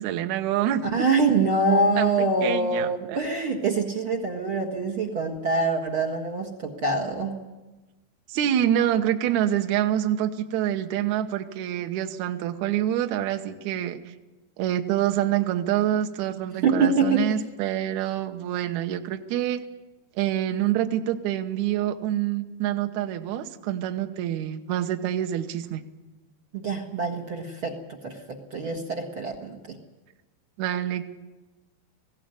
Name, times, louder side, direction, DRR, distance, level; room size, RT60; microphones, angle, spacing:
voice 1, 0.0-0.8 2.0-2.1 2.4-3.2 8.3-14.0 14.6-19.6 20.2-25.8 30.6-31.0, right 11 dB, 70° right, 6 dB, 1.8 m, -26 dB
voice 2, 0.8-7.4 16.6-17.4 26.5-29.8, right 3 dB, 50° right, 0 dB, 1.6 m, -25 dB
20.0 x 16.0 x 9.6 m, 1.1 s
omnidirectional pair, 4.7 m